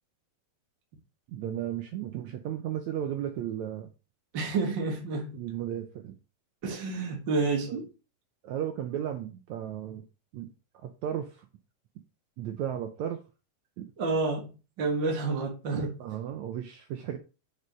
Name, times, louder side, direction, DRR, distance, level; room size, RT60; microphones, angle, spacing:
voice 1, 1.3-3.9 5.3-6.2 7.7-7.8 8.4-10.0 10.3-10.5 10.7-11.5 12.4-13.2 13.8-13.9 16.0-17.2, right 10 dB, 75° right, 1.7 m, -34 dB
voice 2, 4.3-5.4 6.6-7.9 14.0-16.0, right 3 dB, 40° right, 1.8 m, -29 dB
6.8 x 4.9 x 6.2 m
omnidirectional pair, 4.1 m